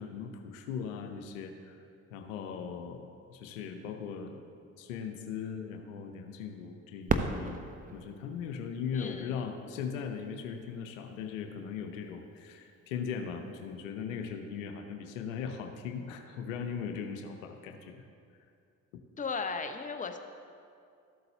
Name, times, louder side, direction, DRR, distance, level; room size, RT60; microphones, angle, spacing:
voice 1, 0.0-1.8 2.1-4.4 4.8-7.6 7.9-18.0, left 6 dB, 80° left, 5 dB, 0.7 m, -39 dB
Fireworks, 7.1-9.8 10.5-10.6 11.3-11.7 13.6-13.8, right 3 dB, 20° right, 0.7 m, -35 dB
voice 2, 8.9-9.3 19.2-20.2, left 4 dB, 20° left, 6 dB, 0.7 m, -36 dB
13.5 x 7.9 x 2.7 m, 2.4 s
hypercardioid pair, 50°, 39 cm